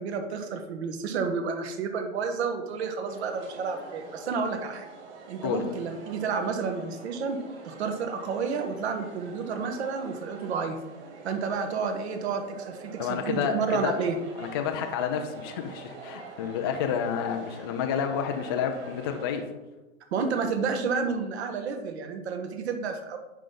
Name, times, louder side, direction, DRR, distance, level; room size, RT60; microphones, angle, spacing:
voice 1, 0.0-4.9 5.3-7.4 7.6-10.8 11.2-14.2 20.1-23.2, right 5 dB, 55° right, 7 dB, 1.5 m, -30 dB
sound 1, 3.0-19.4, right 4 dB, 30° right, 2.7 m, -46 dB
voice 2, 13.0-14.0 14.4-19.5, left 7 dB, 20° left, 4 dB, 0.3 m, -30 dB
10.0 x 5.7 x 3.8 m, 1.1 s
hypercardioid pair, 135°, 39 cm